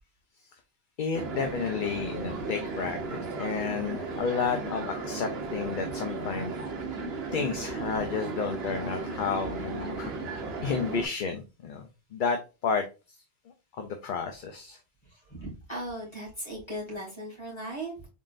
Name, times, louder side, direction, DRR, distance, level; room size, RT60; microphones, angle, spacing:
voice 1, 1.0-6.5 7.3-12.9 13.7-14.8, left 5 dB, 55° left, 5 dB, 0.7 m, -31 dB
sound 1, 1.1-11.1, right 3 dB, 75° right, 1.1 m, -35 dB
voice 2, 15.0-18.1, right 1 dB, 25° left, -4 dB, 2.2 m, -38 dB
3.8 x 3.7 x 2.4 m, 0.29 s
omnidirectional pair, 1.1 m